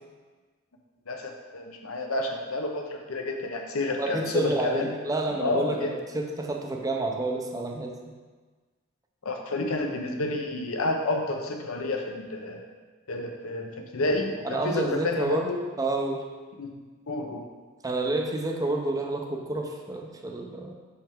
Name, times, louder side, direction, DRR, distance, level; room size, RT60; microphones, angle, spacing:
voice 1, 1.1-4.9 5.4-5.9 9.2-12.6 13.1-15.6 16.6-16.7 17.1-17.5, left 2 dB, 70° left, 3 dB, 0.8 m, -30 dB
voice 2, 4.0-7.9 14.4-15.5 15.8-16.2 17.8-20.7, right 2 dB, 15° right, 2 dB, 0.6 m, -29 dB
5.7 x 5.6 x 3.5 m, 1.4 s
head